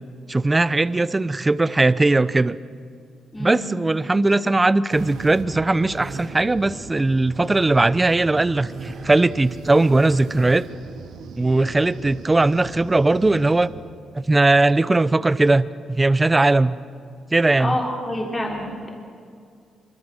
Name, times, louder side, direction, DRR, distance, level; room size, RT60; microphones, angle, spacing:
voice 1, 0.3-2.6 3.4-10.7 11.4-13.7 14.1-16.8 17.3-17.8, right 2 dB, 15° right, 16 dB, 0.6 m, -19 dB
voice 2, 3.3-3.7 17.6-18.9, left 1 dB, 20° left, -1 dB, 3.4 m, -27 dB
sound 1, 4.9-13.7, right 5 dB, 90° right, 2.1 m, -40 dB
sound 2, 5.9-6.4 8.7-9.4, right 3 dB, 40° right, 4.2 m, -38 dB
26.5 x 23.5 x 6.3 m, 2.3 s
cardioid pair, 135°, 0 cm